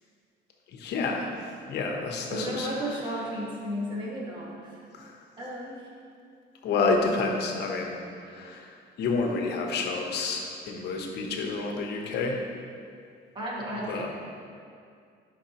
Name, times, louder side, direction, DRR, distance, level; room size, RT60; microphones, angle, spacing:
voice 1, 0.7-2.7 4.9-5.2 6.6-12.4 13.9-14.1, left 3 dB, 60° left, 1 dB, 0.9 m, -29 dB
voice 2, 2.3-4.8 5.4-5.9 13.3-14.1, equal, 25° right, -5 dB, 1.3 m, -34 dB
10.0 x 5.3 x 2.9 m, 2.3 s
cardioid pair, 170°, 19 cm